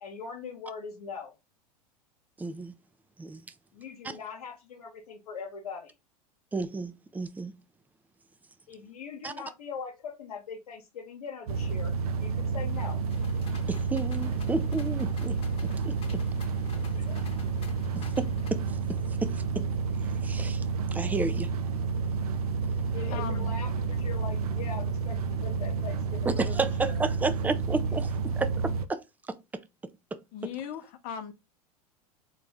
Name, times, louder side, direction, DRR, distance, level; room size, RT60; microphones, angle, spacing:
voice 1, 0.0-1.3 3.7-5.9 8.7-13.0 16.9-17.5 22.9-27.0, left 5 dB, 80° left, 0.9 m, -41 dB
voice 2, 2.4-2.8 3.2-3.4 6.5-7.5 9.2-9.3 13.7-16.2 18.0-19.7 20.2-20.7 20.9-21.5 26.3-30.5, right 3 dB, 10° right, 0.4 m, -33 dB
sound 1, 11.5-28.9, right 4 dB, 75° right, 0.5 m, -30 dB
sound 2, 13.1-18.5, left 6 dB, 30° left, 1.0 m, -49 dB
voice 3, 23.1-23.5 30.3-31.3, left 8 dB, 45° left, 0.7 m, -38 dB
4.0 x 2.3 x 3.4 m
hypercardioid pair, 95°, 19 cm